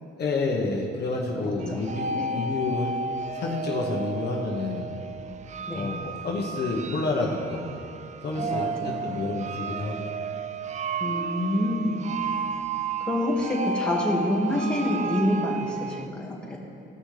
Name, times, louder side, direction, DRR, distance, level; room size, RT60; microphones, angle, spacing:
voice 1, 0.2-2.9 3.3-4.9 5.7-7.9 8.2-10.2, left 3 dB, 55° left, -1 dB, 1.2 m, -29 dB
voice 2, 1.4-1.8 2.1-2.4 5.7-5.9 8.4-9.2 11.0-12.1 13.0-16.6, left 1 dB, 5° left, -4 dB, 1.9 m, -27 dB
sound 1, 1.6-16.1, right 4 dB, 35° right, 0.4 m, -33 dB
16.0 x 6.2 x 3.4 m, 2.7 s
cardioid pair, 90°, 20 cm